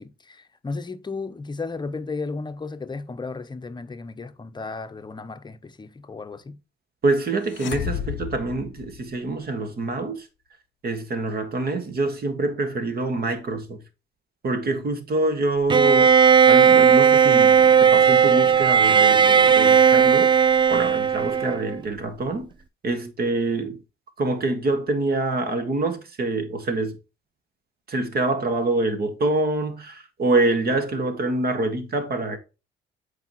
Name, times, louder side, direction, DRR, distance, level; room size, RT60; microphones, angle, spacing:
voice 1, 0.0-6.6, left 3 dB, 20° left, 0.7 m, -34 dB
voice 2, 7.0-10.3 10.8-13.8 14.4-20.3 20.7-22.5 22.8-23.8 24.2-27.0 27.9-32.4, right 2 dB, 50° right, 1.7 m, -25 dB
sound 1, 7.5-9.5, left 12 dB, 70° left, 0.5 m, -32 dB
Bowed string instrument, 15.7-21.8, right 7 dB, 25° right, 0.4 m, -16 dB
8.0 x 4.8 x 3.0 m
cardioid pair, 90°, 20 cm